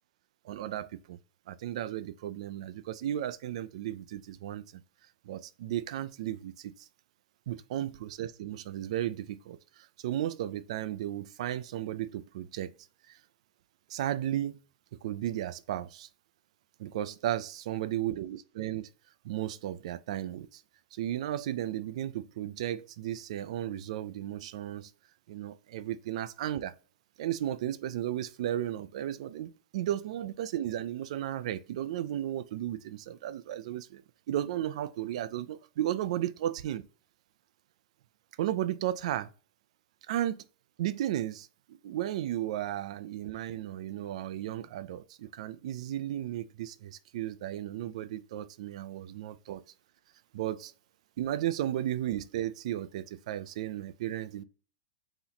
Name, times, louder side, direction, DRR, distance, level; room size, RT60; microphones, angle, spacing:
voice 1, 0.4-1.2 1.5-4.6 5.2-6.9 7.5-12.7 13.1-13.2 13.9-14.6 15.0-16.1 16.8-18.9 19.2-20.6 20.9-24.9 25.3-26.7 27.2-34.0 34.3-36.8 38.4-39.3 40.1-40.4 40.8-49.6 50.3-50.7 51.2-54.4, right 12 dB, 50° right, 0.4 m, -34 dB
4.0 x 3.0 x 3.9 m
supercardioid pair, 170°, 4 cm